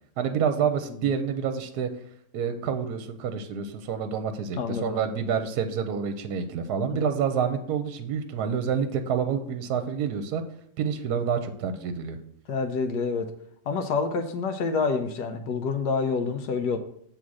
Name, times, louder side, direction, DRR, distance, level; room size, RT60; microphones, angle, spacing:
voice 1, 0.2-1.9 2.3-10.4 10.8-12.2, right 7 dB, 70° right, 8 dB, 1.2 m, -28 dB
voice 2, 4.6-5.0 6.9-7.1 12.5-13.3 13.7-16.8, left 5 dB, 80° left, 5 dB, 1.4 m, -27 dB
8.4 x 3.8 x 6.2 m, 0.66 s
omnidirectional pair, 1.8 m